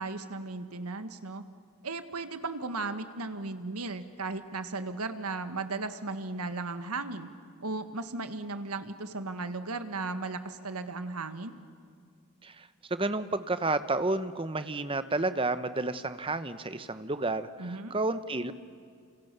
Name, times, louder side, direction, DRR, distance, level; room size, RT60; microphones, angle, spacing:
voice 1, 0.0-1.4 1.8-7.3 7.6-11.5 17.6-17.9, right 3 dB, 85° right, 9 dB, 1.7 m, -36 dB
voice 2, 12.4-18.5, right 2 dB, 25° right, 12 dB, 0.9 m, -31 dB
30.0 x 27.0 x 6.9 m, 2.3 s
head